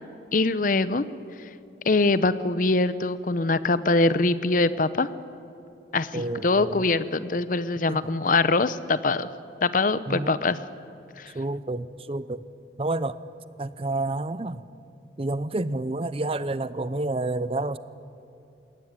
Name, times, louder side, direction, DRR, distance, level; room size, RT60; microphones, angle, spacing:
voice 1, 0.3-1.0 1.8-5.1 5.9-9.3 9.6-10.6 11.2-11.3, left 3 dB, 50° left, 15 dB, 0.7 m, -23 dB
voice 2, 6.1-6.9 7.9-8.1 10.1-10.4 11.3-12.4 12.8-13.2 13.6-14.6 15.2-17.8, right 2 dB, 30° right, 16 dB, 0.6 m, -29 dB
20.5 x 17.0 x 9.8 m, 2.8 s
head